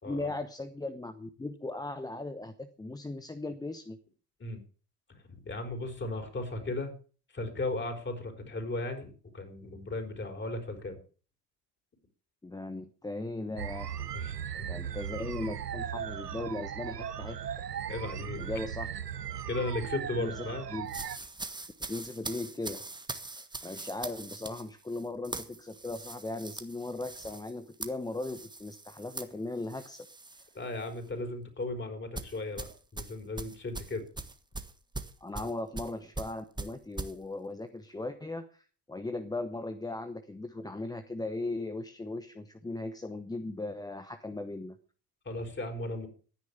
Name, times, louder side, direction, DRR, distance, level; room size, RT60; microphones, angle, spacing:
voice 1, 0.1-4.0 12.4-14.1 14.7-17.7 18.4-18.9 20.2-20.9 21.8-22.8 23.4-30.1 35.2-44.8, left 2 dB, 10° left, 11 dB, 1.0 m, -38 dB
voice 2, 5.1-6.9 7.3-11.0 14.1-14.4 17.9-18.4 19.5-20.7 30.5-34.0 35.4-35.5 45.2-46.1, left 2 dB, 25° left, 5 dB, 4.8 m, -36 dB
sound 1, 13.6-21.2, right 9 dB, 85° right, 0.8 m, -38 dB
sound 2, 20.9-30.5 30.8-31.1 32.1-37.1, right 3 dB, 10° right, 1.5 m, -42 dB
14.0 x 9.8 x 7.0 m, 0.40 s
figure-of-eight pair, 60°, 47 cm